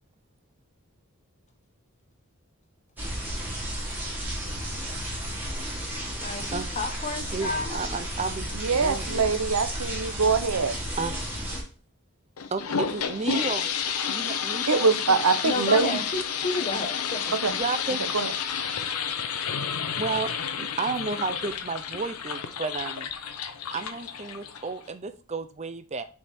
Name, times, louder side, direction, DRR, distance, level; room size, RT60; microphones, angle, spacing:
sound 1, 3.0-11.6, equal, 10° right, 1.6 m, -33 dB
voice 1, 6.2-7.8 15.4-17.3, left 2 dB, 30° left, 0.8 m, -31 dB
voice 2, 7.3-9.3 10.1-10.2 11.0-11.2 12.5-13.7 14.1-14.9 17.5-18.0 20.0-20.3 20.6-23.1 23.7-26.0, right 4 dB, 30° right, 0.5 m, -32 dB
voice 3, 8.5-10.8 14.7-16.0 17.4-17.6 18.1-18.3, right 4 dB, 80° right, 0.7 m, -23 dB
sound 2, 12.4-24.9, left 7 dB, 85° left, 0.7 m, -31 dB
7.7 x 3.6 x 4.2 m
head